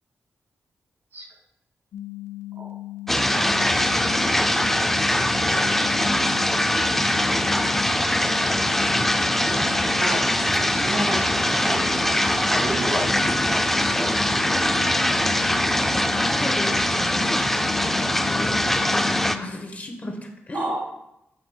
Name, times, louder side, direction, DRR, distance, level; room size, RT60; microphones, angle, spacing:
sound 1, 1.9-19.5, left 17 dB, 85° left, 0.4 m, -37 dB
sound 2, 3.1-19.4, left 1 dB, 5° left, 0.3 m, -22 dB
voice 1, 10.6-13.2 13.5-13.6 13.9-14.7 20.5-20.8, right 1 dB, 60° right, 0 dB, 1.7 m, -31 dB
voice 2, 16.2-17.6 18.3-20.7, left 1 dB, 35° left, 3 dB, 0.9 m, -35 dB
9.1 x 4.8 x 2.2 m, 0.85 s
wide cardioid pair, 100°, 4 cm